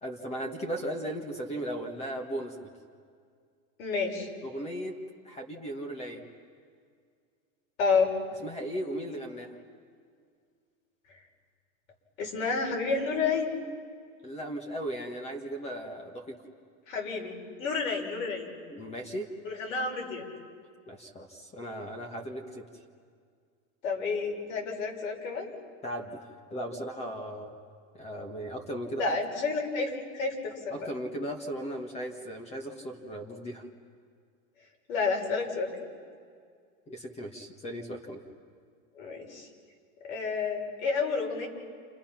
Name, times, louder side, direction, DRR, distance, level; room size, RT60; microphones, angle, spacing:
voice 1, 0.0-2.7 4.4-4.9 5.2-6.3 8.4-9.6 14.2-16.4 18.7-19.3 20.9-22.6 25.8-26.2 26.5-27.5 27.9-29.1 30.7-33.7 36.9-38.2, right 1 dB, 15° left, 3 dB, 1.6 m, -37 dB
voice 2, 3.8-4.3 7.8-8.1 11.1-11.2 12.2-13.5 16.9-17.3 17.6-18.5 19.4-20.3 23.8-25.5 29.0-30.9 34.9-35.7 38.9-39.5 40.0-41.5, left 4 dB, 70° left, 0 dB, 6.9 m, -30 dB
30.0 x 29.5 x 5.9 m, 2.1 s
supercardioid pair, 165°, 41 cm